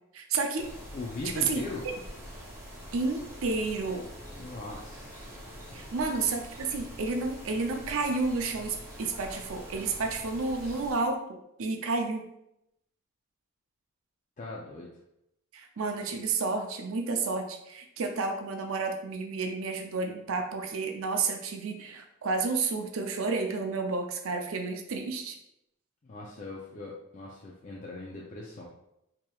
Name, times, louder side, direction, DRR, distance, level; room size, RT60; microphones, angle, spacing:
voice 1, 0.1-0.7 1.4-1.6 2.9-4.0 5.7-12.2 15.5-25.4, right 4 dB, 65° right, 4 dB, 0.5 m, -31 dB
sound 1, 0.6-10.9, equal, 10° right, 0.6 m, -45 dB
voice 2, 0.9-1.9 4.3-5.8 10.6-10.8 14.4-14.9 26.0-28.7, left 2 dB, 35° left, -3 dB, 0.4 m, -40 dB
4.7 x 2.9 x 2.3 m, 0.80 s
head